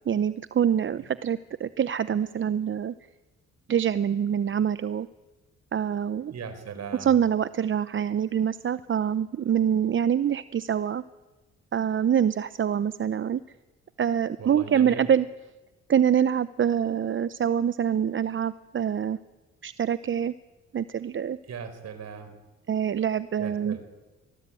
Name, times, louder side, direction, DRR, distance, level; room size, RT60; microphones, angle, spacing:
voice 1, 0.1-2.9 3.7-5.1 5.7-6.3 7.0-11.0 11.7-13.4 14.0-15.3 15.9-19.2 19.6-20.3 20.7-21.4 22.7-23.8, right 8 dB, 40° right, 15 dB, 0.7 m, -25 dB
voice 2, 6.3-7.1 14.4-15.0 21.5-22.3 23.4-23.8, right 6 dB, 60° right, 10 dB, 4.5 m, -38 dB
24.0 x 19.5 x 9.1 m, 1.2 s
cardioid pair, 90°, 30 cm